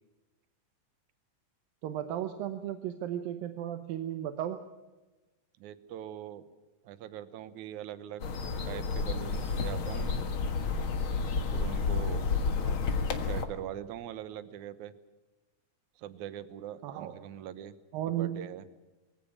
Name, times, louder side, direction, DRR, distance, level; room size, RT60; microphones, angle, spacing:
voice 1, 1.8-4.6 16.8-17.2 17.9-18.5, right 11 dB, 85° right, 9 dB, 2.7 m, -35 dB
voice 2, 5.6-6.4 6.8-8.2 8.7-10.2 11.5-12.2 13.2-14.9 16.0-17.8 18.1-18.7, right 11 dB, 65° right, 13 dB, 2.3 m, -42 dB
sound 1, 8.2-13.4, left 4 dB, 50° left, 1.8 m, -30 dB
23.0 x 16.0 x 8.7 m, 1.1 s
omnidirectional pair, 4.0 m